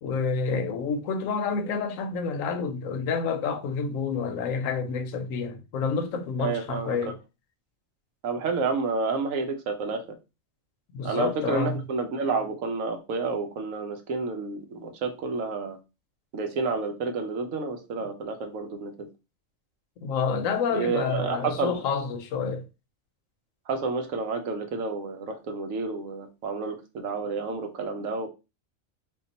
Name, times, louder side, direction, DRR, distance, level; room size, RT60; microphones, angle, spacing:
voice 1, 0.0-7.2 10.9-11.8 20.0-22.7, left 5 dB, 80° left, 1.0 m, -29 dB
voice 2, 6.4-7.0 8.2-10.0 11.0-15.8 16.3-19.1 20.7-21.8 23.7-28.3, right 4 dB, 75° right, 1.1 m, -30 dB
3.6 x 2.3 x 3.9 m
omnidirectional pair, 1.4 m